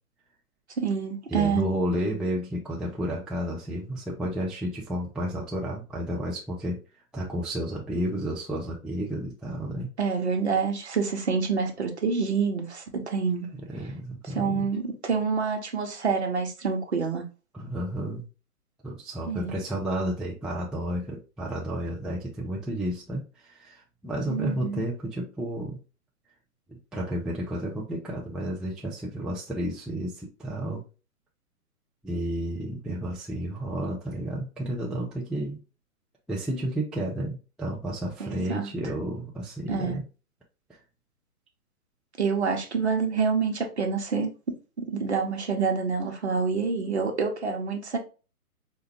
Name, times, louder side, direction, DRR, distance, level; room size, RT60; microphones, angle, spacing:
voice 1, 0.8-1.6 10.0-13.5 14.3-17.2 19.3-19.6 24.3-24.8 38.2-38.7 39.7-40.0 42.2-48.0, right 5 dB, 45° right, 0.7 m, -27 dB
voice 2, 1.3-6.8 7.1-9.9 13.5-14.7 17.5-18.2 18.8-25.8 26.7-30.8 32.0-35.6 36.3-40.0 40.7-40.8, right 1 dB, ahead, 0.3 m, -31 dB
4.6 x 2.2 x 2.9 m
hypercardioid pair, 175°, 46 cm